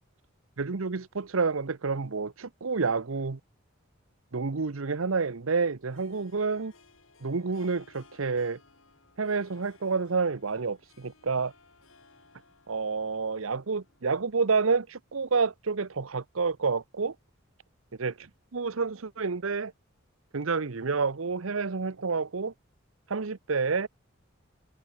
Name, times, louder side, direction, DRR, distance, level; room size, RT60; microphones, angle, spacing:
voice 1, 0.6-3.4 4.3-6.7 7.2-8.6 9.2-11.5 12.7-17.1 18.0-18.1 18.5-19.7 20.3-22.5 23.1-23.9, right 4 dB, 85° right, 0.9 m, -29 dB
Harp, 4.5-14.9, left 4 dB, 85° left, 7.7 m, -61 dB
head